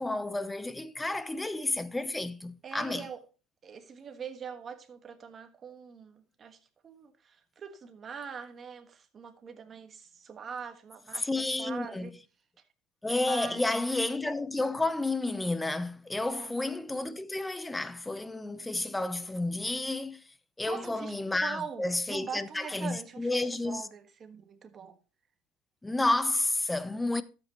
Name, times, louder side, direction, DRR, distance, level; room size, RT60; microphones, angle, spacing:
voice 1, 0.0-3.1 11.1-12.1 13.0-20.2 20.6-23.8 25.8-27.2, left 2 dB, 10° left, 0.7 m, -31 dB
voice 2, 2.6-3.2 3.6-6.6 6.8-12.1 13.1-13.8 16.3-16.5 20.7-25.0, right 6 dB, 30° right, 1.5 m, -43 dB
12.0 x 7.9 x 3.0 m
supercardioid pair, 115°, 0 cm